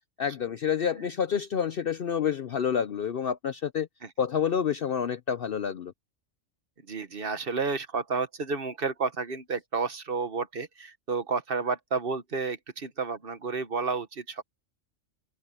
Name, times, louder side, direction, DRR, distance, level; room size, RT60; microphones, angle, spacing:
voice 1, 0.2-3.9 4.2-5.9, left 7 dB, 55° left, 0.7 m, -28 dB
voice 2, 6.9-14.4, right 4 dB, 45° right, 1.2 m, -31 dB
open air
omnidirectional pair, 1.4 m